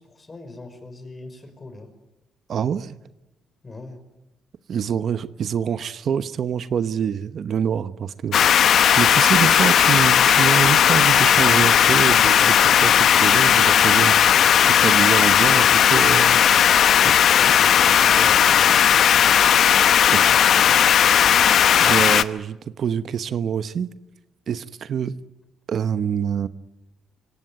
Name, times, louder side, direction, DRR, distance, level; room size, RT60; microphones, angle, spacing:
voice 1, 0.0-1.9 3.6-4.0 17.4-19.5, left 2 dB, 30° left, 8 dB, 5.2 m, -40 dB
voice 2, 2.5-3.0 4.7-8.4 8.9-14.2 14.7-16.4 17.0-17.2 20.1-20.3 20.8-20.9 21.8-23.9 24.5-25.1 25.7-26.5, right 8 dB, 60° right, 13 dB, 1.0 m, -25 dB
sound 1, 8.3-22.2, left 9 dB, 65° left, 0.9 m, -16 dB
25.5 x 18.0 x 9.3 m, 0.99 s
cardioid pair, 90°, 0 cm